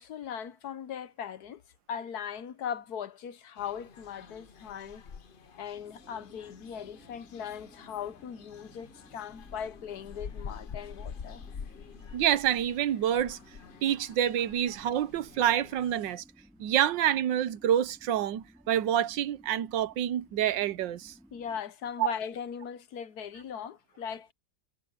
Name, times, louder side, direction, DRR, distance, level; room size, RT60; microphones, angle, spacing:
voice 1, 0.0-1.6 1.9-5.0 5.6-11.4 21.3-24.3, left 8 dB, 65° left, 1.3 m, -39 dB
sound 1, 3.6-16.2, left 6 dB, 50° left, 0.6 m, -47 dB
sound 2, 5.7-21.6, equal, ahead, 4.0 m, -58 dB
voice 2, 12.1-13.4 13.8-16.2 16.6-21.1 22.0-22.1, right 10 dB, 85° right, 1.5 m, -27 dB
omnidirectional pair, 1.9 m